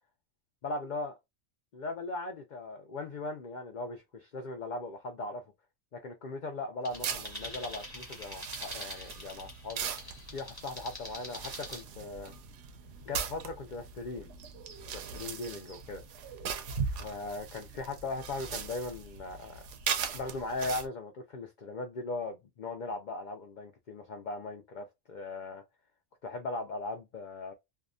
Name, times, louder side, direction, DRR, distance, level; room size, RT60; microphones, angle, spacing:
voice 1, 0.6-1.1 1.7-5.4 5.9-9.9 10.3-12.3 13.0-14.3 14.9-16.0 16.8-19.6 20.1-25.6 26.2-27.5, left 2 dB, 85° left, 0.4 m, -39 dB
sound 1, 6.8-11.8, left 1 dB, 20° left, 0.9 m, -45 dB
sound 2, 6.9-20.9, right 6 dB, 70° right, 0.9 m, -39 dB
2.7 x 2.2 x 2.4 m
omnidirectional pair, 1.4 m